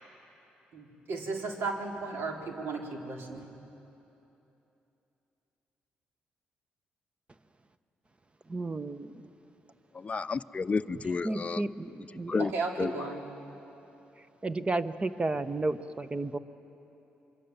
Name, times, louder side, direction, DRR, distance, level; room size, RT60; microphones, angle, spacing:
voice 1, 0.7-3.6 12.4-13.2, right 3 dB, 75° right, 1 dB, 3.3 m, -35 dB
voice 2, 8.5-9.1 11.2-12.4 14.4-16.4, right 2 dB, 30° right, 12 dB, 1.1 m, -32 dB
voice 3, 9.9-11.7 12.3-12.5 12.8-12.9, left 4 dB, 35° left, 11 dB, 0.6 m, -31 dB
27.5 x 23.5 x 7.3 m, 3.0 s
supercardioid pair, 60°, 4 cm